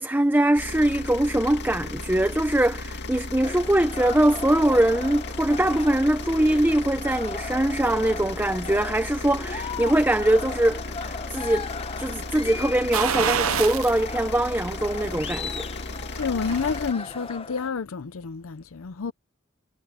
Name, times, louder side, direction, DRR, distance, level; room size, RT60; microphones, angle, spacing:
voice 1, 0.0-11.7 12.0-15.6, right 1 dB, 10° right, 0.7 m, -22 dB
sound 1, 0.6-16.9, left 2 dB, 55° left, 2.2 m, -35 dB
sound 2, 3.4-17.7, left 4 dB, 25° left, 0.8 m, -37 dB
sound 3, 12.9-14.0 14.4-14.5 16.0-16.8 17.1-17.2, right 8 dB, 80° right, 0.7 m, -27 dB
voice 2, 16.1-19.1, left 5 dB, 70° left, 0.6 m, -29 dB
head